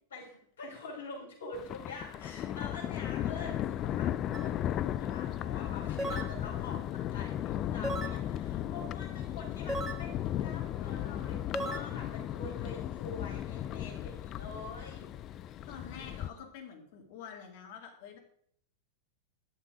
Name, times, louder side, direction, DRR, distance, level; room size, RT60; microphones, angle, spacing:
voice 1, 0.1-4.1 4.4-15.1 15.6-16.4, left 3 dB, 65° left, -4 dB, 5.6 m, -46 dB
Thunder, 1.5-16.3, left 11 dB, 30° left, 0.4 m, -36 dB
sound 1, 4.3-4.5 6.0-6.4 7.8-8.2 9.7-10.1 11.5-11.8, right 1 dB, 15° right, 1.2 m, -35 dB
voice 2, 8.4-9.1 15.7-18.2, left 7 dB, 50° left, 2 dB, 2.7 m, -48 dB
11.5 x 7.4 x 5.0 m, 0.63 s
figure-of-eight pair, 90°, 0 cm